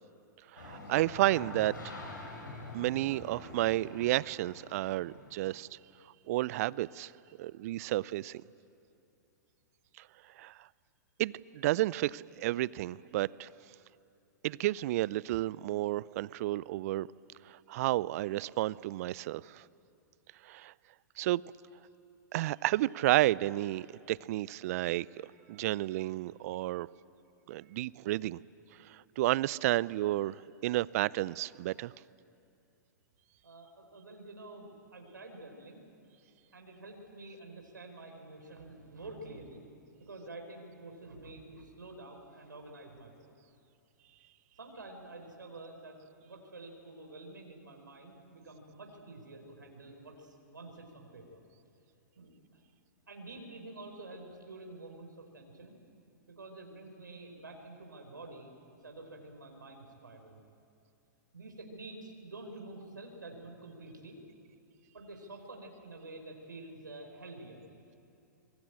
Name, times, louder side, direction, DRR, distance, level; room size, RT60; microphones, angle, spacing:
voice 1, 0.5-1.9 2.7-5.8 6.3-7.1 7.4-8.4 10.4-10.7 11.2-13.5 14.4-17.1 17.5-19.6 20.4-20.7 21.2-21.4 22.3-26.9 27.5-28.4 28.9-31.9, right 16 dB, 50° right, 22 dB, 0.5 m, -31 dB
sound 1, 0.6-5.7, left 2 dB, 80° left, 6.0 m, -46 dB
voice 2, 33.4-35.8 36.5-39.6 40.0-43.3 44.6-51.4 52.2-52.6 53.1-55.8 56.3-60.4 61.3-64.2 64.9-67.6, right 2 dB, 85° right, 3 dB, 4.1 m, -48 dB
25.5 x 23.0 x 8.8 m, 2.6 s
hypercardioid pair, 110°, 10 cm